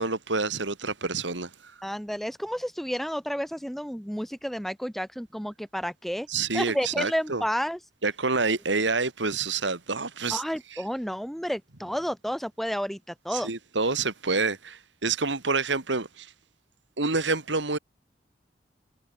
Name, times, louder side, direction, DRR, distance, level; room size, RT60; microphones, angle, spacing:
voice 1, 0.0-1.7 6.3-7.4 8.0-10.4 13.3-16.3 17.0-17.8, right 4 dB, 75° right, 2.4 m, -28 dB
voice 2, 1.8-6.3 6.5-7.8 10.3-13.5, equal, ahead, 2.3 m, -31 dB
head